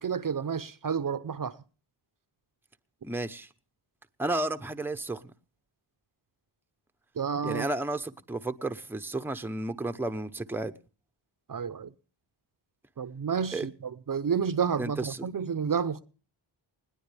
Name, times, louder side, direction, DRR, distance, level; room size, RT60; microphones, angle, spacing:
voice 1, 0.0-1.6 7.2-7.7 11.5-11.9 13.0-16.0, right 6 dB, 40° right, 0.8 m, -30 dB
voice 2, 3.0-3.5 4.2-5.3 7.4-10.7 13.5-13.7 14.8-15.2, right 2 dB, 5° right, 0.8 m, -32 dB
20.5 x 18.5 x 3.4 m
wide cardioid pair, 105°, 49 cm